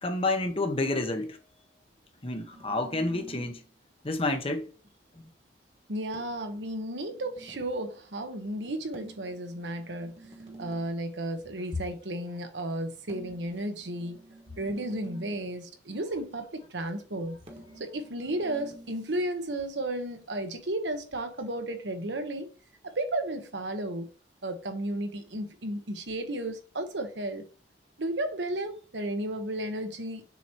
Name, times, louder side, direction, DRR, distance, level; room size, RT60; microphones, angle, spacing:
voice 1, 0.0-1.4 2.2-3.6 4.0-4.7 5.2-5.3, left 2 dB, 30° left, 1.0 m, -29 dB
sound 1, 2.3-3.7 6.1-7.8 8.9-11.0 13.1-15.5 17.5-18.9, right 2 dB, 35° right, 1.6 m, -49 dB
voice 2, 5.9-10.2 10.6-14.2 14.6-17.4 17.8-22.5 22.8-24.1 24.4-27.4 28.0-30.3, right 1 dB, 80° right, 1.2 m, -33 dB
7.0 x 3.0 x 4.5 m
head